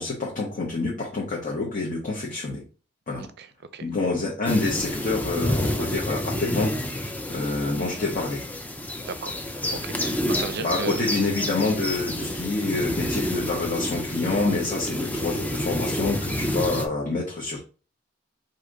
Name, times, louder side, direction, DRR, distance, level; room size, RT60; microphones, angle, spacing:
voice 1, 0.0-2.6 3.1-3.3 3.8-8.4 10.6-17.6, left 3 dB, 40° left, -2 dB, 1.0 m, -27 dB
sound 1, 4.4-16.8, left 1 dB, 10° left, 0.5 m, -29 dB
voice 2, 9.1-9.4 9.7-11.0, right 4 dB, 55° right, 11 dB, 0.5 m, -34 dB
4.9 x 2.8 x 3.8 m, 0.36 s
head